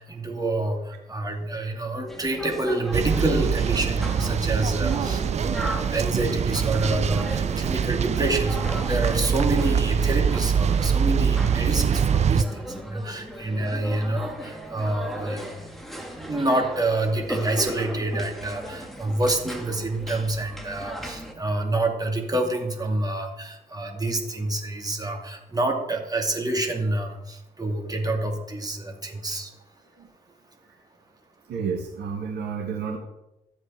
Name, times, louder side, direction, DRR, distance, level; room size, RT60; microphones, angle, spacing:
voice 1, 0.0-15.5 16.1-29.5, right 2 dB, 20° right, 2 dB, 2.5 m, -27 dB
sound 1, 2.1-21.3, equal, ahead, 2.0 m, -37 dB
sound 2, 2.9-12.4, right 7 dB, 35° right, 0.5 m, -24 dB
voice 2, 31.5-33.0, right 6 dB, 55° right, 2 dB, 1.4 m, -31 dB
13.5 x 7.7 x 4.5 m, 0.92 s
figure-of-eight pair, 40°, 20 cm